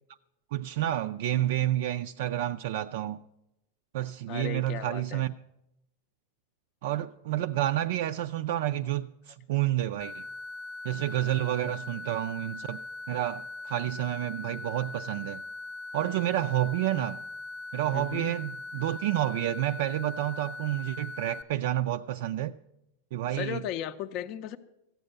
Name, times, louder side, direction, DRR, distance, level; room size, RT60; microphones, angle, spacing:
voice 1, 0.5-3.2 3.9-5.3 6.8-10.2 10.8-12.8 13.1-15.4 15.9-17.2 17.7-22.6 23.1-23.6, right 13 dB, 60° right, 0.4 m, -29 dB
voice 2, 4.3-5.2 16.9-17.1 17.9-18.3 23.3-24.6, left 10 dB, 35° left, 0.5 m, -36 dB
sound 1, 10.0-21.4, left 2 dB, 15° left, 0.9 m, -41 dB
14.5 x 8.8 x 6.6 m
supercardioid pair, 165°, 0 cm